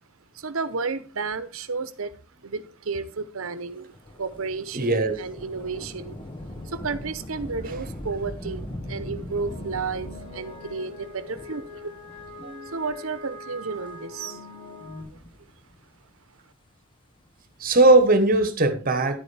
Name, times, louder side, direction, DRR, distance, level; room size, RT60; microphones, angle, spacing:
voice 1, 0.3-2.1 2.4-6.2 6.6-11.9 12.6-14.4 15.1-15.2, right 4 dB, 75° right, 0.9 m, -32 dB
Thunder / Rain, 3.9-12.9 13.6-13.7 14.7-15.9 17.5-18.2, left 1 dB, 25° left, 1.1 m, -40 dB
voice 2, 4.7-5.2 12.4-12.5 17.6-19.2, right 2 dB, 45° right, 1.3 m, -19 dB
sound 1, 9.4-15.0, left 2 dB, 55° left, 6.8 m, -42 dB
11.0 x 8.8 x 3.4 m
head